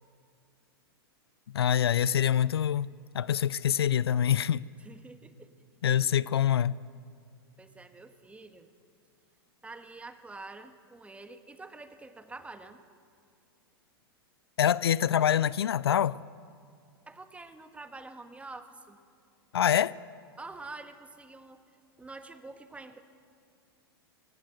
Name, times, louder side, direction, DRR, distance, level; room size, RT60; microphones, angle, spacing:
voice 1, 1.5-2.9 3.1-4.6 5.8-6.8 14.6-16.2 19.5-20.0, left 9 dB, 80° left, 0.4 m, -25 dB
voice 2, 4.8-5.5 7.6-8.7 9.6-12.8 17.1-19.0 20.4-21.6 22.0-23.0, right 3 dB, 10° right, 1.4 m, -46 dB
21.5 x 17.5 x 7.9 m
hypercardioid pair, 100°, 13 cm